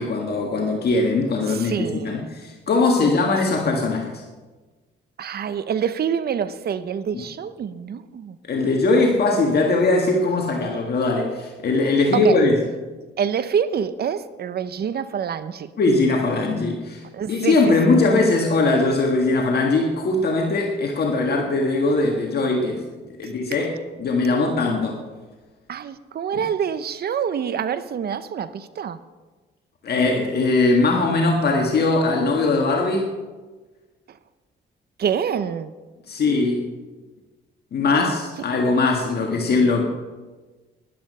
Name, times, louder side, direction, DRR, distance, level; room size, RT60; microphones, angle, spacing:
voice 1, 0.0-4.2 7.1-7.2 8.5-12.5 15.8-17.0 17.3-22.8 23.2-23.7 24.0-25.0 29.8-33.1 36.1-36.7 37.7-39.9, left 3 dB, 55° left, 1.8 m, -20 dB
voice 2, 1.4-2.3 3.0-3.1 3.5-3.6 5.2-8.4 12.1-12.4 13.2-15.7 17.1-18.0 25.7-29.0 34.1-34.2 35.0-35.7, right 8 dB, 50° right, 0.7 m, -26 dB
13.0 x 11.0 x 5.5 m
cardioid pair, 90°, 20 cm